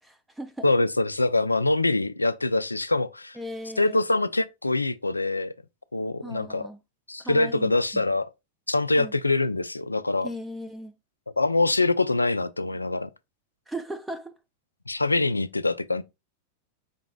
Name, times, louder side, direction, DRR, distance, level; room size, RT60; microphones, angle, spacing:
voice 1, 0.0-0.7 3.3-4.0 6.2-6.8 7.2-8.1 9.0-9.1 10.2-10.9 13.7-14.3, equal, 5° right, 0.4 m, -37 dB
voice 2, 0.6-3.4 3.8-5.5 5.9-6.6 7.1-8.3 8.7-10.3 11.4-13.1 14.9-16.0, left 2 dB, 80° left, 0.3 m, -24 dB
5.2 x 3.9 x 2.3 m
figure-of-eight pair, 90°, 0 cm